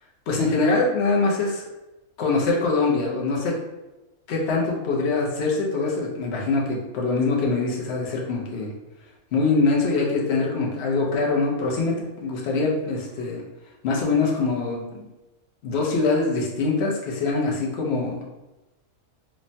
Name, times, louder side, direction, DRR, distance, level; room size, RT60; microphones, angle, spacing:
voice 1, 0.3-1.7 2.2-3.6 4.3-8.7 9.3-13.4 13.8-15.1 15.6-18.2, left 3 dB, 60° left, -2 dB, 0.8 m, -23 dB
3.0 x 2.1 x 2.6 m, 1.0 s
omnidirectional pair, 1.4 m